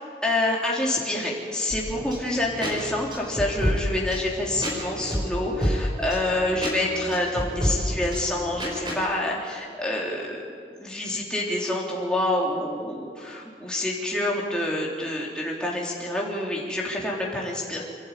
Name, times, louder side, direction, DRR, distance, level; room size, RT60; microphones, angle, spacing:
voice 1, 0.2-10.4 10.8-17.9, left 1 dB, 5° left, -4 dB, 3.5 m, -27 dB
sound 1, 1.7-9.0, equal, 25° right, 5.4 m, -30 dB
28.0 x 11.5 x 9.2 m, 2.3 s
head